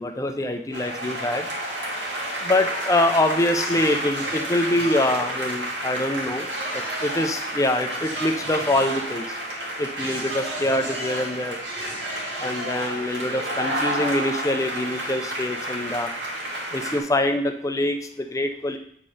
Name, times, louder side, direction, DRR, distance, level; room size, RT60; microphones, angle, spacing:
voice 1, 0.0-1.5 2.4-9.4 9.8-11.6 12.4-16.1 16.7-18.8, left 1 dB, 20° left, 6 dB, 0.5 m, -25 dB
sound 1, 0.7-17.0, right 1 dB, 85° right, 2.3 m, -30 dB
8.7 x 4.4 x 4.8 m, 0.69 s
head